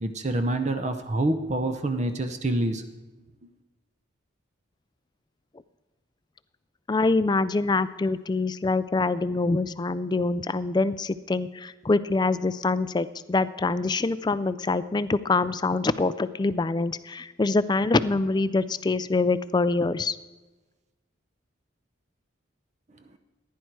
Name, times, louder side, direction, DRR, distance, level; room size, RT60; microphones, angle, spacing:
voice 1, 0.0-2.8, right 1 dB, 35° right, 7 dB, 0.7 m, -26 dB
voice 2, 6.9-20.2, left 3 dB, 20° left, 15 dB, 0.4 m, -25 dB
15.0 x 10.5 x 4.7 m, 1.2 s
head